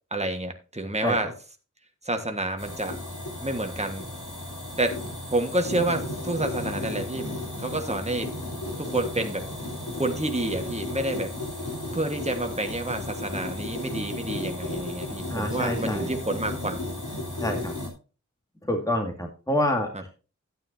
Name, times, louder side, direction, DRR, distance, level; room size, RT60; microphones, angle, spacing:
voice 1, 0.1-1.3 2.0-3.0 3.4-4.1 4.8-5.0 5.3-7.3 7.6-8.3 8.8-9.5 9.9-11.3 11.9-16.8 19.9-20.0, right 2 dB, 20° right, 5 dB, 1.5 m, -29 dB
sound 1, 2.6-17.9, left 1 dB, 85° left, 3.9 m, -34 dB
voice 2, 15.3-16.1 17.4-17.7 18.7-20.1, left 1 dB, 10° left, 2 dB, 2.1 m, -27 dB
12.0 x 9.3 x 2.7 m, 0.34 s
wide cardioid pair, 45°, 30 cm